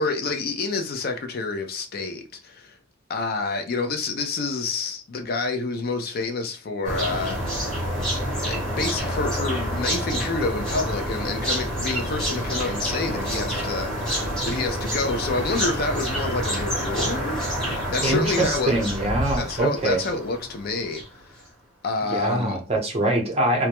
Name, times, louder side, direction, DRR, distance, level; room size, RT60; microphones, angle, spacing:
voice 1, 0.0-2.8 3.1-7.8 8.4-18.8 19.4-21.4 21.8-22.6, left 3 dB, 50° left, 0.4 m, -28 dB
sound 1, 6.8-21.2, equal, 5° left, 0.9 m, -28 dB
voice 2, 18.0-20.0 22.1-23.7, right 1 dB, 35° right, 0.7 m, -23 dB
2.2 x 2.1 x 2.8 m
head